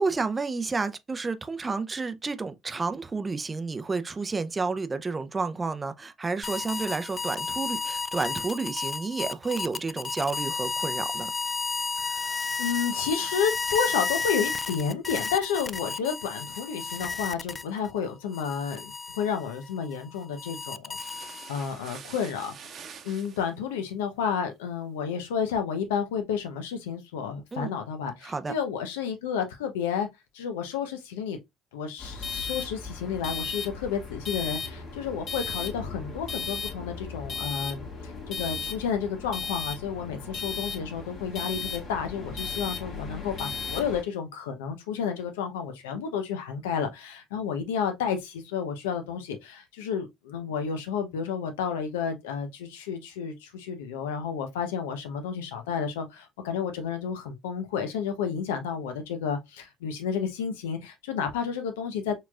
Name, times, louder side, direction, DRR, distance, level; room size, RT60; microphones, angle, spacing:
voice 1, 0.0-11.3 27.5-27.8 28.2-28.5, right 4 dB, 25° right, 0.5 m, -30 dB
sound 1, 6.4-17.9 18.3-21.7, left 4 dB, 30° left, 0.3 m, -32 dB
voice 2, 12.0-22.7 23.0-30.1 30.3-31.4 31.7-62.2, left 7 dB, 90° left, 0.7 m, -31 dB
sound 2, 20.9-23.5, right 6 dB, 55° right, 0.9 m, -45 dB
sound 3, 32.0-44.0, left 4 dB, 60° left, 1.6 m, -36 dB
4.2 x 3.1 x 2.3 m
hypercardioid pair, 65°, 0 cm